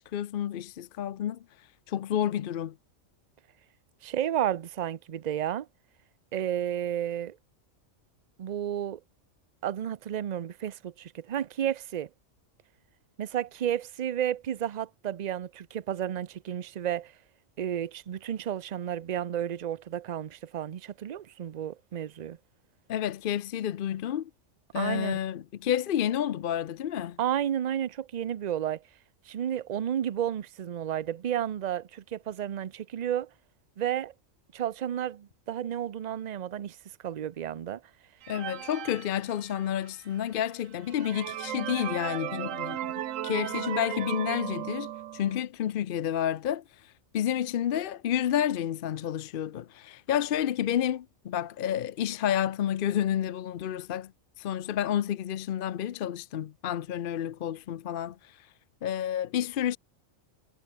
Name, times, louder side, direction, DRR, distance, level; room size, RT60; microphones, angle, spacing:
voice 1, 0.0-1.4 1.9-2.7 22.9-24.3 24.7-27.2 38.3-42.8 43.2-54.1 54.4-58.5 58.8-59.8, left 10 dB, 55° left, 0.6 m, -30 dB
voice 2, 4.0-5.7 6.3-7.4 8.4-9.0 9.6-12.1 13.2-17.1 17.6-22.4 24.7-25.1 27.2-28.8 29.3-33.3 33.8-34.1 34.5-36.8 37.0-37.8, right 10 dB, 50° right, 0.5 m, -32 dB
sound 1, 38.2-39.9 40.4-40.5 40.9-45.4, right 12 dB, 80° right, 1.1 m, -36 dB
omnidirectional pair, 1.3 m